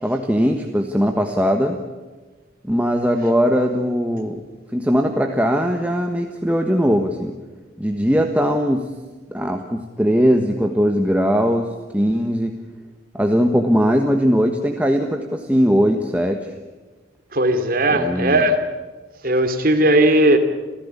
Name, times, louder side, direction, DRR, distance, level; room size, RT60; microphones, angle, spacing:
voice 1, 0.0-1.8 2.6-4.4 4.7-7.3 7.8-8.9 9.3-11.7 11.9-12.6 13.1-16.5 17.9-18.4, equal, 5° right, 3 dB, 1.4 m, -19 dB
voice 2, 17.3-18.6 19.2-20.4, right 1 dB, 45° right, 7 dB, 2.8 m, -17 dB
28.0 x 16.0 x 8.5 m, 1.3 s
head